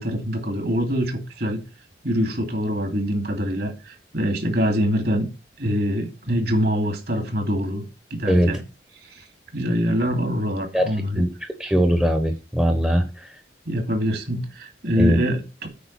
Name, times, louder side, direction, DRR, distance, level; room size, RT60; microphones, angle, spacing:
voice 1, 0.0-1.6 2.0-5.3 5.6-7.9 8.1-8.6 9.0-9.3 9.5-11.2 13.7-15.7, equal, 55° right, 2.5 m, -24 dB
voice 2, 10.7-11.3 11.6-13.3 15.0-15.2, equal, 5° right, 1.0 m, -21 dB
8.5 x 5.0 x 7.4 m
head